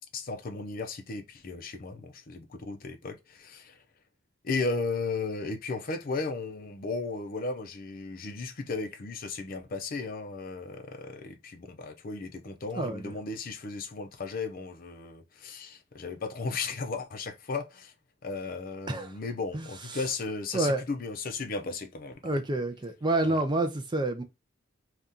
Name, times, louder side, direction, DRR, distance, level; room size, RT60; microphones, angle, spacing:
voice 1, 0.1-3.8 4.4-17.9 18.2-22.4 23.3-23.4, left 3 dB, 45° left, 0.5 m, -35 dB
voice 2, 12.7-13.1 18.9-19.1 19.5-19.7 20.5-20.8 22.2-24.2, right 2 dB, 20° right, 0.5 m, -28 dB
2.7 x 2.4 x 3.5 m
head